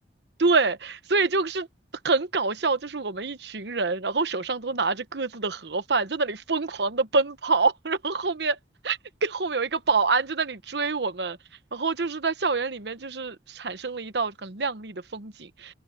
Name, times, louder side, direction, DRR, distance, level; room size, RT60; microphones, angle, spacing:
voice 1, 0.4-1.7 2.0-8.6 8.8-11.4 11.7-15.7, right 4 dB, 65° right, 1.0 m, -26 dB
open air
head